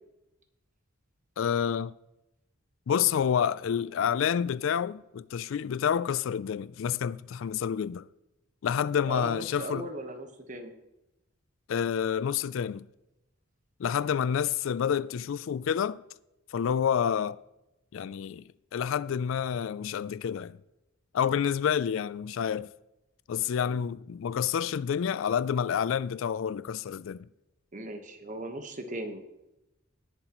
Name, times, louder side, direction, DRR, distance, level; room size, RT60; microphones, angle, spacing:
voice 1, 1.4-1.9 2.9-8.0 8.6-9.9 11.7-12.8 13.8-16.0 16.5-17.4 17.9-18.4 18.7-20.6 21.1-22.7 23.3-27.3, left 8 dB, 70° left, 0.3 m, -28 dB
voice 2, 9.1-10.7 27.7-29.2, right 1 dB, 40° right, 1.2 m, -38 dB
19.0 x 7.4 x 3.0 m
head